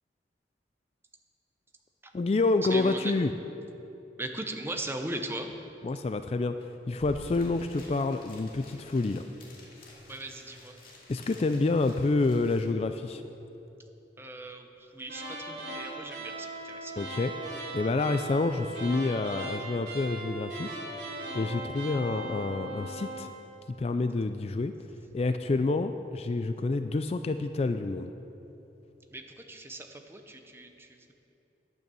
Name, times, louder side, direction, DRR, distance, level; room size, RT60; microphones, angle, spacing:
voice 1, 2.1-3.3 5.8-6.5 6.9-9.3 11.1-13.2 17.0-20.8 21.3-23.3 23.8-24.7 25.1-28.1, left 3 dB, 35° left, 9 dB, 0.3 m, -28 dB
voice 2, 2.7-3.1 4.2-5.5 10.1-10.8 14.2-16.9 29.1-31.1, right 2 dB, 15° right, 4 dB, 0.8 m, -39 dB
sound 1, 6.6-6.7 6.9-12.6, left 1 dB, 55° left, 2.3 m, -50 dB
sound 2, 15.0-23.3, right 2 dB, 75° right, 3.3 m, -39 dB
11.0 x 9.1 x 6.9 m, 2.9 s
head